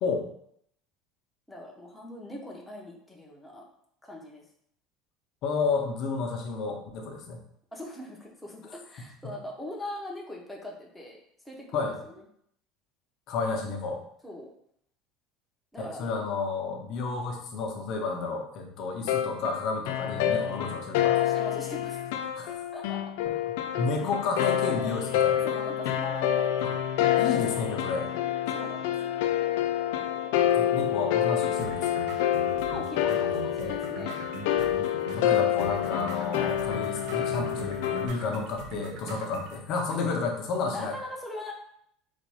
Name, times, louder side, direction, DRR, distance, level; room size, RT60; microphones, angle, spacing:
voice 1, 1.5-3.6 4.0-4.4 7.7-11.2 11.4-12.2 14.2-14.5 15.7-16.2 21.2-22.0 22.7-23.1 24.8-25.0 25.3-26.9 27.9-29.1 32.7-34.1 40.7-41.5, left 1 dB, 5° left, -2 dB, 0.7 m, -41 dB
voice 2, 5.4-7.4 9.2-9.3 11.7-12.0 13.3-14.0 15.8-21.2 22.4-22.6 23.2-23.4 23.8-25.4 26.6-26.7 27.2-28.1 30.5-32.0 35.1-40.9, left 4 dB, 45° left, 2 dB, 0.8 m, -31 dB
sound 1, 19.1-38.1, left 11 dB, 75° left, 0.4 m, -27 dB
sound 2, 31.6-39.6, right 4 dB, 65° right, 0.7 m, -41 dB
4.1 x 2.5 x 4.8 m, 0.70 s
cardioid pair, 170°, 0 cm